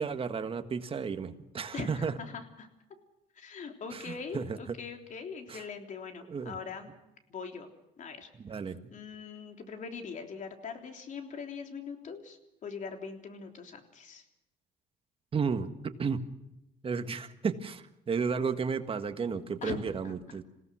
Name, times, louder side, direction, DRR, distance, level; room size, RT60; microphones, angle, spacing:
voice 1, 0.0-2.1 3.9-4.8 5.5-5.6 6.3-6.6 8.4-8.8 15.3-15.7 16.0-16.3 16.8-20.4, right 5 dB, 35° right, 8 dB, 1.7 m, -33 dB
voice 2, 1.7-2.7 3.3-6.9 7.3-7.7 8.0-8.3 8.9-14.2 19.6-20.1, left 5 dB, 50° left, 5 dB, 3.4 m, -42 dB
27.5 x 17.5 x 6.3 m, 0.87 s
cardioid pair, 110°, 17 cm